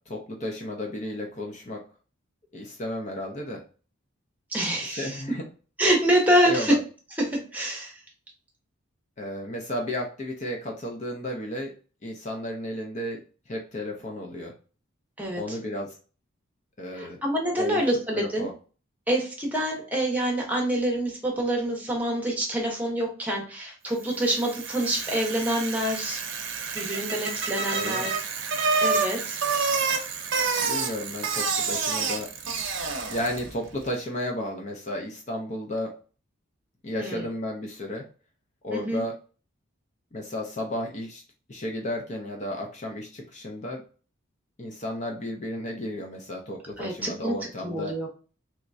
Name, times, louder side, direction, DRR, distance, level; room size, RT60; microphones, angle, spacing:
voice 1, 0.1-1.8 2.5-3.6 4.8-5.4 6.4-6.8 9.2-11.7 12.0-14.5 15.4-16.0 16.8-17.2 17.6-17.8 18.1-18.5 27.7-28.1 30.6-32.3 33.1-35.9 36.8-38.1 38.6-39.2 40.1-41.2 41.5-43.8 44.6-47.9, left 1 dB, 35° left, 1 dB, 0.5 m, -33 dB
voice 2, 4.5-5.2 5.8-6.7 7.2-8.0 15.2-15.6 16.9-18.5 19.1-26.2 26.7-28.1 28.8-29.4 37.0-37.3 38.7-39.0 46.8-48.1, right 1 dB, 10° right, -1 dB, 0.8 m, -26 dB
Bicycle, 24.1-33.5, right 5 dB, 60° right, 0.7 m, -28 dB
3.5 x 3.1 x 2.6 m, 0.37 s
head